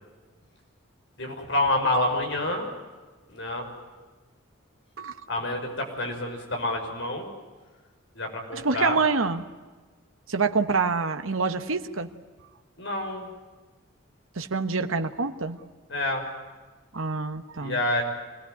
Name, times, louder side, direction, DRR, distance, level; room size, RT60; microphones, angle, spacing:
voice 1, 1.2-2.6 3.3-3.6 5.3-7.3 8.1-9.0 12.8-13.3 15.9-16.2 17.6-18.0, left 1 dB, 60° left, 3 dB, 6.2 m, -28 dB
voice 2, 8.5-9.5 10.3-12.1 14.3-15.6 16.9-17.8, right 4 dB, 85° right, 7 dB, 1.3 m, -26 dB
25.5 x 19.5 x 9.6 m, 1.3 s
head